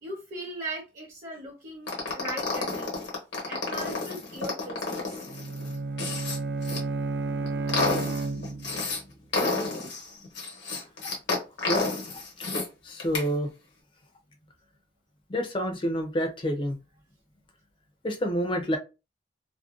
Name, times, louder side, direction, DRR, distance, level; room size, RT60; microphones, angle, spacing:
voice 1, 0.0-3.0 3.5-5.3 11.0-11.1, right 1 dB, 45° right, 0.7 m, -39 dB
sound 1, 1.9-6.8 7.3-9.0 9.3-12.7 13.0-13.3, left 3 dB, 90° left, 1.0 m, -30 dB
Bowed string instrument, 5.3-8.9, right 3 dB, 65° right, 0.3 m, -32 dB
voice 2, 11.7-12.5 12.8-13.5 15.3-16.8 18.0-18.8, equal, 30° left, 0.5 m, -28 dB
2.5 x 2.1 x 2.4 m
head